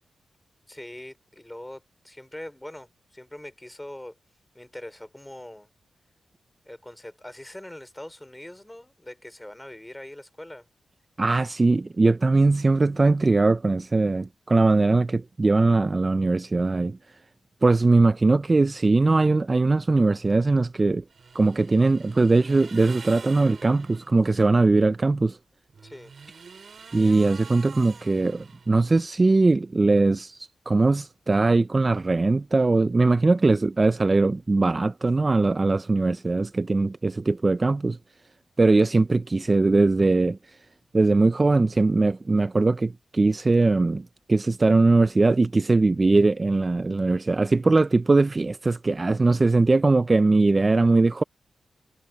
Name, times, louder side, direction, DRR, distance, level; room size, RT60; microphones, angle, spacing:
voice 1, 0.7-4.2 4.5-5.7 6.6-10.7 25.8-26.1, left 1 dB, 10° left, 2.8 m, -42 dB
voice 2, 11.2-17.0 17.6-21.0 21.3-25.4 26.9-38.0 38.6-40.6 40.9-51.2, right 3 dB, 25° right, 0.4 m, -21 dB
sound 1, 21.1-24.2 25.7-29.0, right 5 dB, 50° right, 2.4 m, -46 dB
wide cardioid pair, 135°, 0 cm